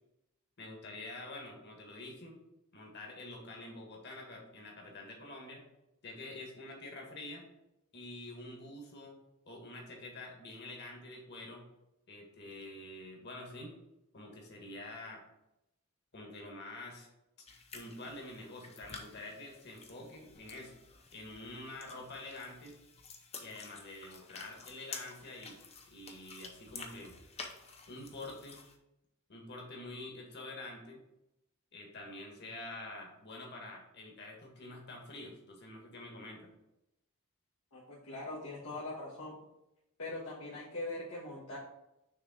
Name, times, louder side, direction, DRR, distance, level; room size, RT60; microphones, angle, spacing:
voice 1, 0.6-2.4 2.7-5.6 6.0-7.4 7.9-9.2 9.4-11.6 12.1-13.7 14.1-15.2 16.1-17.1 17.7-20.7 21.1-22.8 23.4-25.6 25.9-27.1 27.9-28.6 29.3-31.0 31.7-36.5, left 2 dB, 50° left, 0 dB, 1.6 m, -47 dB
sound 1, 17.5-28.8, left 4 dB, 30° left, 0.7 m, -51 dB
voice 2, 37.7-39.4 40.0-41.6, left 2 dB, 85° left, -8 dB, 1.6 m, -42 dB
6.5 x 3.3 x 4.9 m, 0.88 s
head